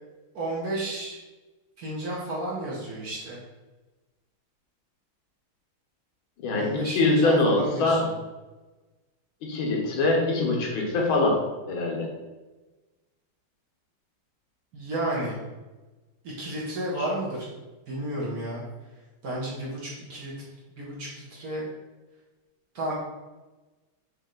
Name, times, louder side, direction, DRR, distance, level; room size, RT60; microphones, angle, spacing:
voice 1, 0.3-1.2 1.8-3.4 6.5-8.2 14.7-15.4 16.2-17.5 17.9-18.6 19.2-20.3 20.7-21.7 22.7-23.0, right 1 dB, 55° right, -5 dB, 1.2 m, -32 dB
voice 2, 6.4-8.0 9.4-11.4 11.7-12.1 17.0-17.1, left 2 dB, 80° left, -1 dB, 1.7 m, -23 dB
4.2 x 3.2 x 3.8 m, 1.2 s
omnidirectional pair, 2.3 m